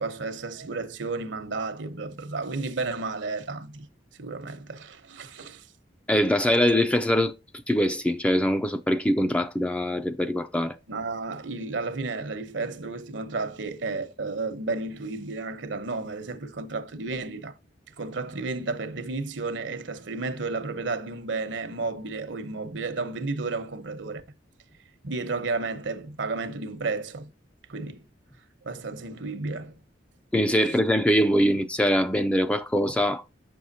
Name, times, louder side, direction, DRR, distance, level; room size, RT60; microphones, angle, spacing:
voice 1, 0.0-3.9 4.2-5.7 10.9-17.6 18.0-24.2 25.0-27.3 27.7-28.0 28.6-29.7 30.6-30.8, right 3 dB, 75° right, 0.9 m, -32 dB
voice 2, 6.1-7.3 7.7-10.8 30.3-33.2, equal, 5° left, 0.3 m, -23 dB
7.7 x 6.2 x 2.7 m
head